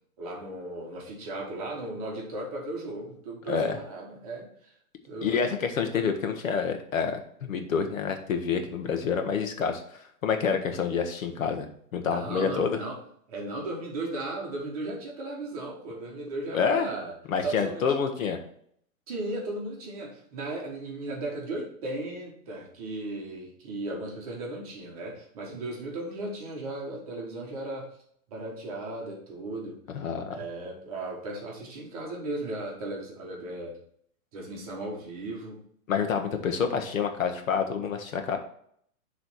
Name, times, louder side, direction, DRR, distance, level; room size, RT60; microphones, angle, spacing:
voice 1, 0.2-4.7 5.1-5.5 12.0-13.0 13.3-17.1 17.4-17.8 19.1-27.9 28.3-29.8 30.3-33.8 34.3-35.6, right 2 dB, 25° right, -1 dB, 1.3 m, -36 dB
voice 2, 5.2-9.8 10.2-12.8 16.5-16.9 17.3-18.4 29.9-30.3 35.9-38.4, left 6 dB, 65° left, 6 dB, 1.2 m, -28 dB
6.7 x 3.3 x 6.0 m, 0.65 s
hypercardioid pair, 175°, 43 cm